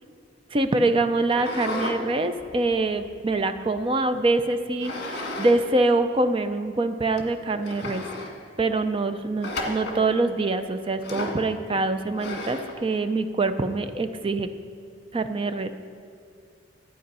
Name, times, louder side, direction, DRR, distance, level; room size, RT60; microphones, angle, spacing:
voice 1, 0.5-8.0 8.6-14.5 15.1-15.7, right 2 dB, 30° right, 9 dB, 0.5 m, -24 dB
sound 1, 1.3-2.0 2.4-3.8 4.8-5.6 5.9-6.0 6.7-6.8 7.2-7.3 7.6-8.3 9.4-10.0 11.0-11.4 12.2-12.8, left 2 dB, 55° left, 1.6 m, -33 dB
12.0 x 8.4 x 5.5 m, 2.4 s
head